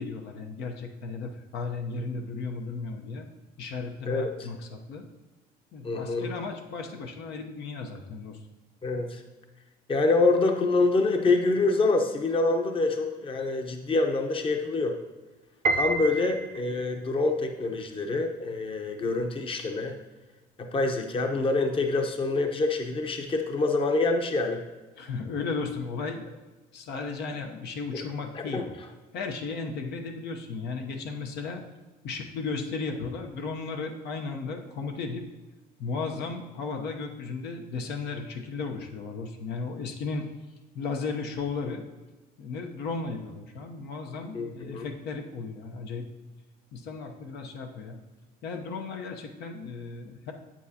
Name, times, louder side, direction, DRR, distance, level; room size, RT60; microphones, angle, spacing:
voice 1, 0.0-3.3 3.6-5.0 5.7-8.4 25.0-26.3 26.7-28.7 29.1-31.6 32.0-35.2 35.8-40.3 40.7-41.8 42.4-46.1 46.7-48.0 48.4-50.3, left 4 dB, 75° left, 3 dB, 0.9 m, -35 dB
voice 2, 4.0-4.5 5.8-6.3 8.8-9.2 9.9-15.0 15.7-20.0 20.6-24.6 28.3-28.6 44.3-44.9, left 3 dB, 30° left, 4 dB, 0.8 m, -26 dB
Piano, 15.6-16.9, right 2 dB, 50° right, 0.6 m, -28 dB
8.1 x 7.4 x 2.9 m, 1.2 s
cardioid pair, 110°, 17 cm